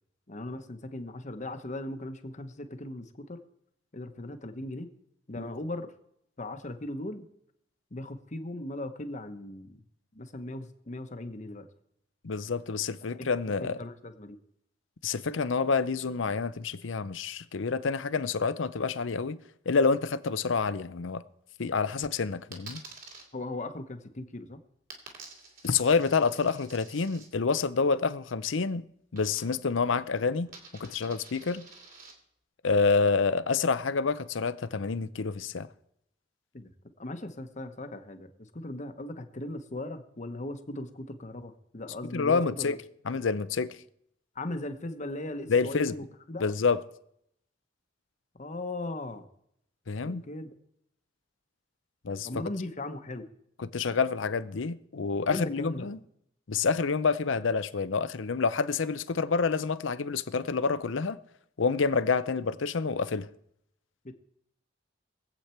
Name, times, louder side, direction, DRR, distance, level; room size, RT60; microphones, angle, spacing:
voice 1, 0.3-3.4 3.9-4.9 5.3-5.9 6.4-7.3 7.9-9.8 10.1-11.7 13.2-13.3 13.6-14.4 23.3-24.6 36.5-36.7 37.0-42.8 44.3-46.4 48.4-49.3 50.0-50.5 52.2-53.3 55.3-55.9 64.0-64.1, left 1 dB, 40° left, 1.1 m, -38 dB
voice 2, 12.2-13.8 15.0-19.4 19.7-21.2 21.6-22.8 25.6-31.6 32.6-35.7 42.1-42.8 43.1-43.7 45.5-46.0 46.4-46.8 49.9-50.2 52.0-52.3 53.6-56.0 56.5-61.2 61.6-63.3, left 4 dB, 85° left, 0.7 m, -28 dB
Coin (dropping), 22.5-23.2 24.9-27.3 29.1-29.8 30.1-32.1, right 3 dB, 45° right, 2.9 m, -49 dB
23.0 x 8.3 x 4.4 m
head